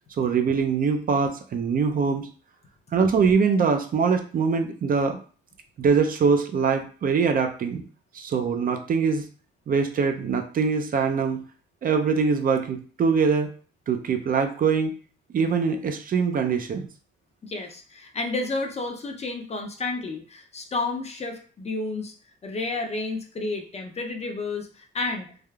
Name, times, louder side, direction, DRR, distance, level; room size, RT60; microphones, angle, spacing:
voice 1, 0.2-2.3 2.9-5.2 5.8-7.8 8.1-9.2 9.7-11.4 11.8-13.5 13.9-15.0 15.3-16.9, right 5 dB, 45° right, 6 dB, 0.5 m, -23 dB
voice 2, 17.4-22.1 22.4-25.3, left 3 dB, 35° left, 3 dB, 0.5 m, -31 dB
3.3 x 2.4 x 2.3 m, 0.40 s
cardioid pair, 90°, 20 cm